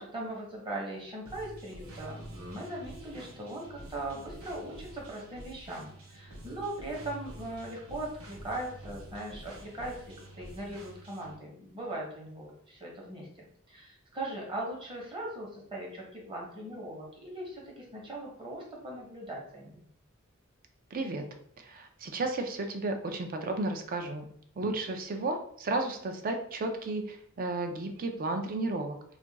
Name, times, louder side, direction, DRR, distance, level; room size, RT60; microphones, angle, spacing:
voice 1, 0.0-10.0 10.4-19.8, right 1 dB, 25° right, -2 dB, 0.9 m, -40 dB
sound 1, 1.3-11.4, right 1 dB, 85° right, 0.8 m, -48 dB
voice 2, 20.9-21.2 21.6-24.3 24.6-29.0, right 2 dB, 45° right, 5 dB, 0.4 m, -33 dB
2.4 x 2.2 x 3.8 m, 0.66 s
head